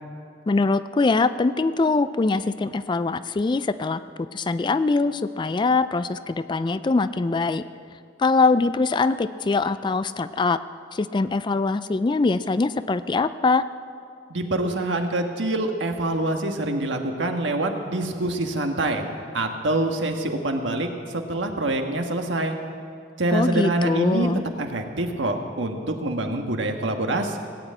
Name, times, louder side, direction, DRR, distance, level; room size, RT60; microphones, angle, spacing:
voice 1, 0.5-4.0 4.3-7.6 8.2-10.6 10.9-13.6 23.3-24.4, left 3 dB, 25° left, 14 dB, 0.3 m, -22 dB
voice 2, 14.3-19.0 19.3-22.6 23.2-24.3 24.6-27.4, right 2 dB, 75° right, 4 dB, 1.4 m, -25 dB
18.0 x 8.1 x 8.8 m, 2.4 s
head